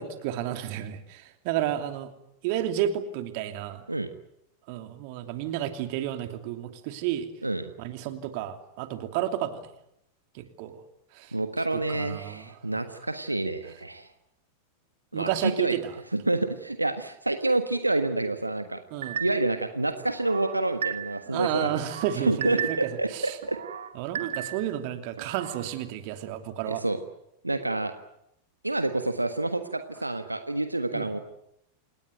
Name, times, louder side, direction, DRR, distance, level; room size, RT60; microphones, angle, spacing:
voice 1, 0.0-2.1 2.4-3.8 4.7-7.3 7.8-9.7 10.3-10.8 11.1-11.4 11.7-12.8 15.1-15.9 18.9-19.2 21.3-23.4 23.9-26.8 30.9-31.1, right 11 dB, 45° right, 8 dB, 2.9 m, -31 dB
voice 2, 11.3-14.1 15.1-15.7 16.1-18.8 19.2-21.7 22.2-23.6 26.6-27.0 27.4-27.9 28.6-31.2, right 2 dB, 85° right, 9 dB, 1.5 m, -28 dB
sound 1, 19.0-19.6 20.1-21.3 21.7-23.0 23.4-24.8 25.2-25.7, right 9 dB, 65° right, 1.8 m, -35 dB
28.0 x 19.5 x 9.3 m, 0.80 s
figure-of-eight pair, 90°, 0 cm